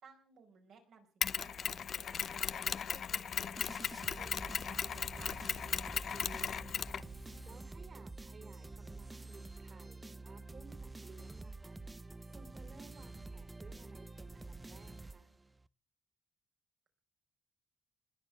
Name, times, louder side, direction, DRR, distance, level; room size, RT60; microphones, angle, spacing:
voice 1, 0.0-3.6 4.1-5.4, right 6 dB, 70° right, 4 dB, 4.8 m, -58 dB
Mechanisms, 1.2-7.5, left 7 dB, 55° left, 0.6 m, -37 dB
sound 1, 3.6-15.7, right 2 dB, 15° right, 0.7 m, -48 dB
voice 2, 6.1-7.1 7.4-11.8 12.3-15.3, right 4 dB, 45° right, 9 dB, 3.7 m, -58 dB
20.5 x 7.3 x 8.2 m, 0.40 s
cardioid pair, 90°, 0 cm